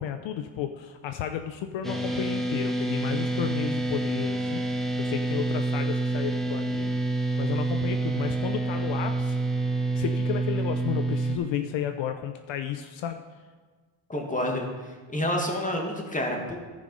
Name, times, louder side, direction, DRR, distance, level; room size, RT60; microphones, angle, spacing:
voice 1, 0.0-6.9 7.4-9.4 9.9-13.2, left 9 dB, 65° left, 8 dB, 0.7 m, -33 dB
sound 1, 1.8-11.4, right 2 dB, ahead, 1.2 m, -28 dB
voice 2, 14.1-16.6, left 1 dB, 15° left, 1 dB, 2.0 m, -29 dB
14.5 x 5.1 x 5.3 m, 1.4 s
cardioid pair, 95°, 48 cm